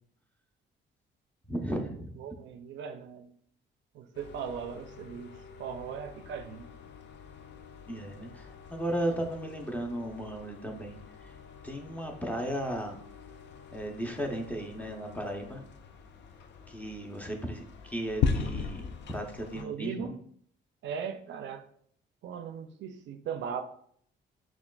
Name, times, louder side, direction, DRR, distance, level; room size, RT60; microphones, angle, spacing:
voice 1, 1.5-2.1 7.9-11.3 11.6-13.0 13.7-15.6 16.7-20.1, right 1 dB, 5° left, 2 dB, 0.7 m, -35 dB
voice 2, 2.2-3.3 3.9-5.3 5.6-6.7 19.5-20.2 20.8-21.6 22.2-23.6, right 7 dB, 70° right, 8 dB, 0.4 m, -38 dB
sound 1, 4.1-19.6, left 5 dB, 65° left, 0.4 m, -40 dB
5.8 x 2.3 x 2.3 m, 0.63 s
cardioid pair, 90°, 20 cm